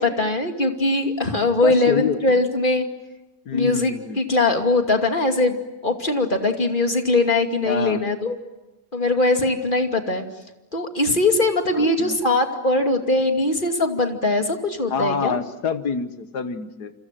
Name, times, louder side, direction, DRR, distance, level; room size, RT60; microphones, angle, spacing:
voice 1, 0.0-2.9 3.5-5.6 5.8-8.4 8.9-10.2 10.7-15.4, left 2 dB, 30° left, 5 dB, 2.7 m, -21 dB
voice 2, 1.6-2.2 3.5-4.2 7.7-8.0 11.7-12.2 14.9-16.9, left 6 dB, 90° left, 10 dB, 1.9 m, -26 dB
28.5 x 26.5 x 7.6 m, 1.0 s
omnidirectional pair, 1.7 m